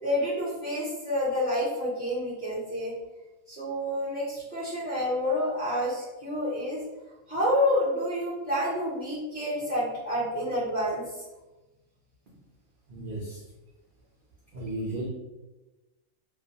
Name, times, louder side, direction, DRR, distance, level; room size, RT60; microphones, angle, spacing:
voice 1, 0.0-2.9 3.5-6.8 7.3-11.0, left 1 dB, 40° left, -10 dB, 0.8 m, -28 dB
voice 2, 12.9-13.4 14.5-15.1, right 1 dB, 85° right, -5 dB, 0.4 m, -34 dB
2.4 x 2.1 x 2.6 m, 1.1 s
omnidirectional pair, 1.5 m